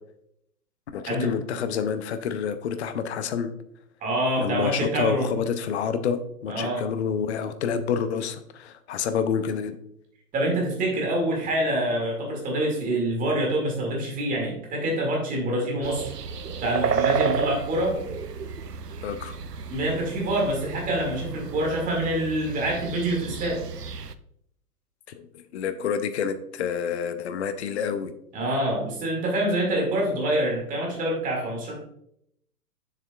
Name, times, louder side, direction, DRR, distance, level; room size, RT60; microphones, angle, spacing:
voice 1, 0.9-3.5 4.4-9.8 19.0-19.4 25.1-28.1, left 7 dB, 45° left, 10 dB, 0.7 m, -28 dB
voice 2, 4.0-5.3 6.5-6.8 10.3-16.1 16.6-18.0 19.7-23.6 28.3-31.8, right 1 dB, 15° right, -1 dB, 2.0 m, -26 dB
sound 1, 15.8-24.1, right 6 dB, 85° right, 0.6 m, -31 dB
7.2 x 7.0 x 2.3 m, 0.73 s
figure-of-eight pair, 115°, 46 cm